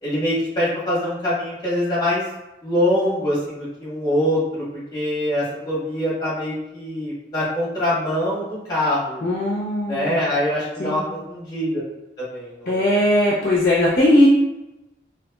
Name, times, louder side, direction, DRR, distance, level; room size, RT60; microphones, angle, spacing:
voice 1, 0.0-2.2 2.6-4.7 4.9-9.2 9.9-11.8 12.2-12.8, left 1 dB, 25° left, -8 dB, 1.4 m, -24 dB
voice 2, 9.2-10.2 10.8-11.0 12.7-14.3, left 1 dB, 55° left, -5 dB, 0.6 m, -19 dB
3.9 x 2.7 x 2.3 m, 0.96 s
head